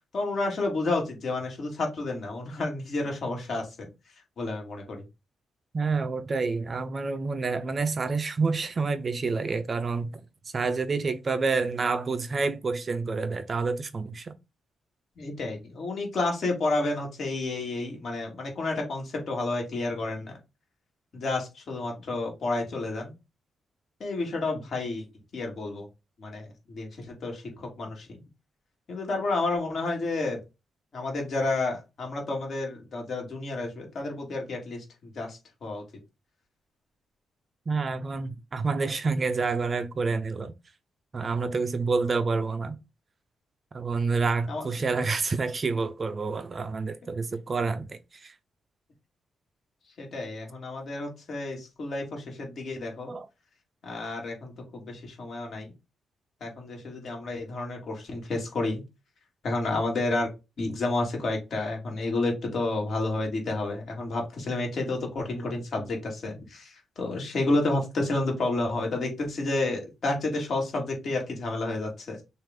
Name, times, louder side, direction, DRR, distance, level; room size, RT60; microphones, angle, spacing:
voice 1, 0.1-3.9 4.4-5.0 15.2-20.3 21.1-23.1 24.0-25.1 25.3-25.9 26.2-28.2 28.9-30.4 30.9-35.8 44.5-44.6 50.0-53.1 53.8-55.7 56.4-58.8 59.4-60.3 60.6-72.2, left 2 dB, 45° left, 1.9 m, -30 dB
voice 2, 5.7-10.1 10.5-14.3 37.7-40.5 41.1-42.8 43.7-48.3 53.1-53.3, right 4 dB, 30° right, 0.4 m, -28 dB
6.3 x 2.4 x 3.5 m
wide cardioid pair, 165°, 0 cm